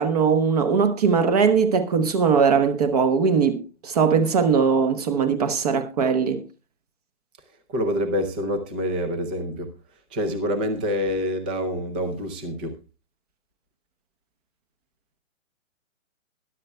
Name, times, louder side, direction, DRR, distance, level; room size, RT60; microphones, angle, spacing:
voice 1, 0.0-6.4, right 6 dB, 30° right, 1.0 m, -20 dB
voice 2, 7.7-9.7 10.1-12.8, equal, 5° right, 0.6 m, -26 dB
21.0 x 10.5 x 2.2 m
hypercardioid pair, 160°, 40 cm